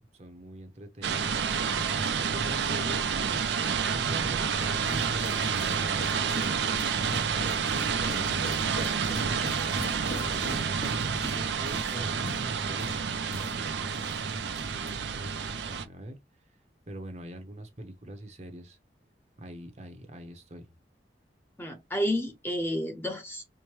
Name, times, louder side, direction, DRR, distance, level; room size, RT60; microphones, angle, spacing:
voice 1, 0.0-1.4 1.7-3.4 3.9-7.1 7.6-10.6 11.3-13.0 13.3-16.2 16.9-18.8 19.4-20.7, right 1 dB, 35° right, 0.7 m, -43 dB
sound 1, 1.0-15.8, right 6 dB, 70° right, 0.5 m, -29 dB
sound 2, 4.4-14.2 14.5-14.9, left 1 dB, 70° left, 1.1 m, -42 dB
voice 2, 21.6-23.4, equal, 10° left, 0.7 m, -30 dB
4.6 x 2.1 x 3.1 m
head